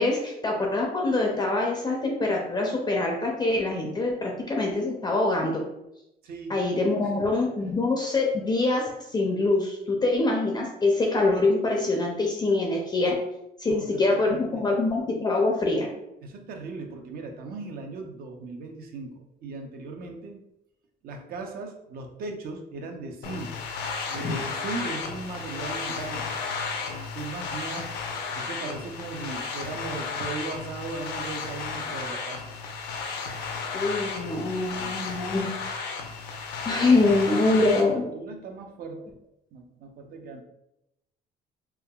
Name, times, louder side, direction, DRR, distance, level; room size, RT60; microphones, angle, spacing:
voice 1, 0.0-5.6 6.5-13.2 13.6-15.9 24.2-24.4 33.7-35.5 36.7-38.1, left 2 dB, 25° left, 0 dB, 0.4 m, -24 dB
voice 2, 6.2-6.6 7.0-7.1 13.7-14.7 16.2-20.4 21.0-23.5 24.1-26.2 27.1-27.9 28.4-32.4 34.8-35.1 37.1-37.6 37.9-39.2 39.5-40.4, right 3 dB, 60° right, 3 dB, 0.5 m, -38 dB
sound 1, 23.2-37.8, left 5 dB, 85° left, 0.5 m, -33 dB
3.4 x 2.2 x 2.3 m, 0.87 s
cardioid pair, 110°, 17 cm